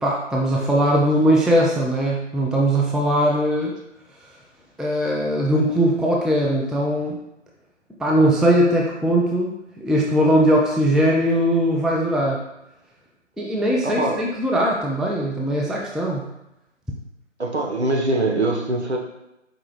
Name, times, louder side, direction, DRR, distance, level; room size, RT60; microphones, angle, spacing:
voice 1, 0.0-3.7 4.8-7.1 8.0-9.5 9.8-12.4 13.4-16.3, equal, ahead, -2 dB, 0.3 m, -20 dB
voice 2, 13.8-14.3 17.4-19.0, right 2 dB, 60° right, 1 dB, 0.8 m, -23 dB
4.6 x 2.8 x 3.0 m, 0.89 s
figure-of-eight pair, 165°, 38 cm